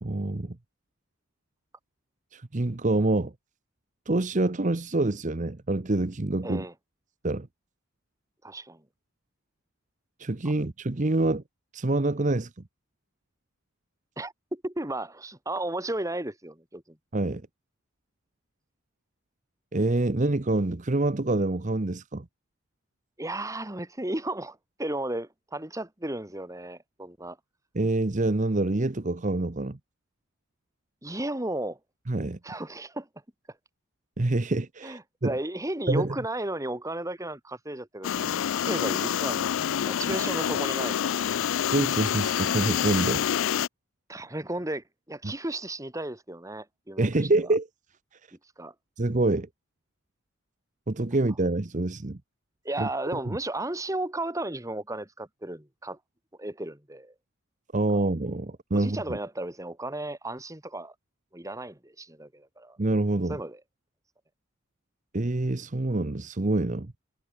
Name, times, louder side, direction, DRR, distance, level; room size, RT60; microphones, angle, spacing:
voice 1, 0.0-0.6 2.3-3.3 4.1-6.6 7.2-7.5 10.2-11.4 11.7-12.5 17.1-17.4 19.7-22.2 27.7-29.8 32.1-32.4 34.2-35.3 35.9-36.2 41.7-43.3 45.2-45.3 47.0-47.7 49.0-49.5 50.9-52.2 52.8-53.2 57.7-59.2 62.8-63.4 65.1-66.9, right 2 dB, 35° right, 0.9 m, -26 dB
voice 2, 6.4-6.7 8.4-8.8 14.2-17.0 23.2-27.4 31.0-31.8 32.4-33.1 34.8-41.2 44.1-47.1 48.6-48.7 52.6-56.0 56.4-57.1 58.7-60.9 61.3-62.8 63.3-63.6, right 1 dB, 15° right, 2.0 m, -34 dB
sound 1, 38.0-43.7, left 9 dB, 65° left, 0.4 m, -27 dB
head